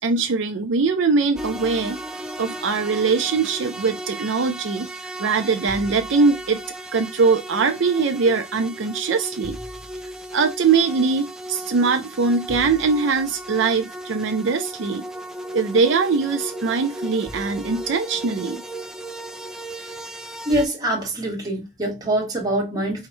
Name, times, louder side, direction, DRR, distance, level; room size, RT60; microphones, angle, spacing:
voice 1, 0.0-2.0 2.4-6.6 6.9-9.6 10.3-15.0 15.5-18.6, right 4 dB, 65° right, 0.5 m, -21 dB
sound 1, 1.4-20.7, right 1 dB, ahead, 0.4 m, -35 dB
voice 2, 20.4-23.1, right 1 dB, 20° right, 1.3 m, -24 dB
4.7 x 2.1 x 4.4 m
head